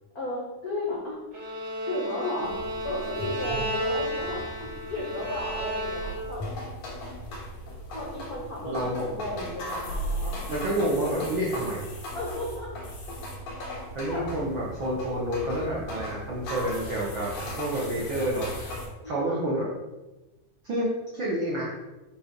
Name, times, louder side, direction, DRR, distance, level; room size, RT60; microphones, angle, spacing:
voice 1, 0.1-1.2 1.9-2.6 2.8-6.4 7.9-10.5 11.2-11.3 12.1-12.7 13.6-13.7 14.1-14.3 19.0-19.4, left 2 dB, 80° left, -5 dB, 0.8 m, -34 dB
Bowed string instrument, 1.3-6.5, right 1 dB, 40° right, 1.7 m, -33 dB
sound 1, 2.4-18.9, equal, 60° left, 2.8 m, -37 dB
voice 2, 8.7-9.0 10.5-11.8 13.9-18.6 19.0-19.7 20.6-21.7, right 1 dB, 75° right, -5 dB, 1.1 m, -29 dB
6.7 x 3.6 x 5.2 m, 1.1 s
omnidirectional pair, 3.8 m